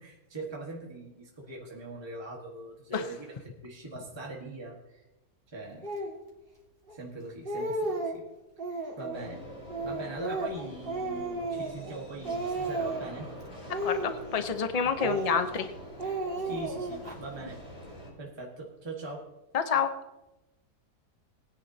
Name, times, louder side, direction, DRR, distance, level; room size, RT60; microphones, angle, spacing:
voice 1, 0.0-3.3 3.6-5.0 5.5-5.9 6.9-8.2 8.7-9.4 9.8-13.3 15.0-15.2 16.4-17.6 18.2-19.3, right 2 dB, 20° right, -2 dB, 1.5 m, -41 dB
Speech, 5.8-6.2 6.9-7.0 7.3-8.2 8.6-9.2 9.7-12.0 12.2-13.2 13.7-14.6 15.0-15.7 16.0-17.2, right 2 dB, 35° right, 2.3 m, -33 dB
sound 1, 9.1-18.1, left 1 dB, 60° left, 5.1 m, -46 dB
voice 2, 13.8-15.7 19.5-19.9, left 7 dB, 35° left, 8 dB, 0.7 m, -28 dB
20.0 x 10.0 x 2.8 m, 0.99 s
omnidirectional pair, 1.6 m